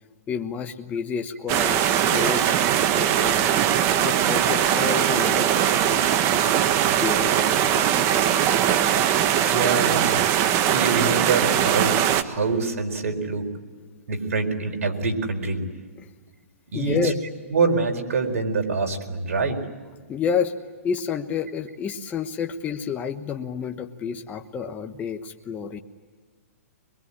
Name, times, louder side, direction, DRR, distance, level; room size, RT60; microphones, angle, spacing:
voice 1, 0.3-2.5 2.9-3.6 4.0-6.6 6.9-8.2 16.7-17.2 20.1-20.5 20.8-25.8, left 6 dB, 20° left, 5 dB, 1.2 m, -30 dB
Medium river, 1.5-12.2, right 10 dB, 35° right, 1.4 m, -21 dB
sound 1, 2.0-8.8, left 2 dB, ahead, 3.4 m, -44 dB
voice 2, 9.5-10.2 10.7-13.4 14.1-15.6 16.7-17.1 17.5-19.6, right 4 dB, 70° right, 4 dB, 4.5 m, -25 dB
23.5 x 22.5 x 10.0 m, 1.5 s
hypercardioid pair, 140°, 8 cm